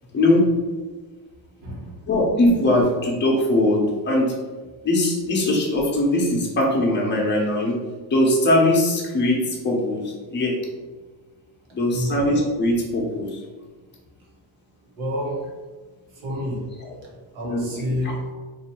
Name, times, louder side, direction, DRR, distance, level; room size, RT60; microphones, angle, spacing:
voice 1, 0.1-0.4 2.1-4.3 4.8-7.8 8.1-10.6 11.7-13.4 16.8-16.9 17.4-17.7 18.0-18.1, left 1 dB, 25° left, -2 dB, 0.8 m, -21 dB
voice 2, 1.6-1.9 11.9-12.2 15.0-15.4 16.2-16.6 17.3-18.2, equal, 65° right, -3 dB, 1.3 m, -28 dB
2.8 x 2.7 x 4.3 m, 1.3 s
cardioid pair, 145°, 48 cm